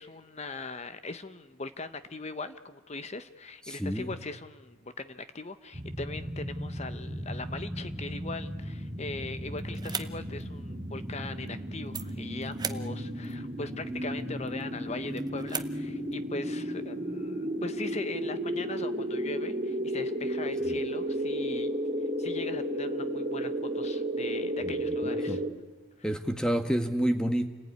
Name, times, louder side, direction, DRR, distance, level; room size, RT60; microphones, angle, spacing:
voice 1, 0.0-21.7 22.2-25.4, left 3 dB, 30° left, 11 dB, 0.9 m, -40 dB
voice 2, 3.7-4.2 20.6-20.8 24.6-24.7 25.0-25.4 26.0-27.5, equal, 5° left, 7 dB, 1.5 m, -29 dB
sound 1, 5.7-25.5, equal, 40° right, 3.4 m, -34 dB
sound 2, 9.5-16.2, right 6 dB, 20° right, 0.7 m, -42 dB
29.5 x 19.5 x 9.5 m, 1.3 s
head